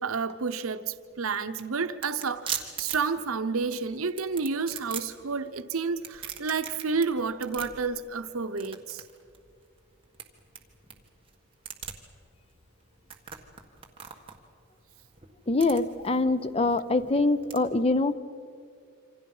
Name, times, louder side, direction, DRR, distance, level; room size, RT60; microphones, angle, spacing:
voice 1, 0.0-9.0, right 4 dB, 80° right, 10 dB, 0.9 m, -30 dB
sound 1, 0.9-17.6, right 8 dB, 25° right, 1.6 m, -42 dB
voice 2, 15.5-18.1, left 2 dB, 25° left, 12 dB, 0.7 m, -24 dB
27.5 x 25.5 x 5.5 m, 2.3 s
head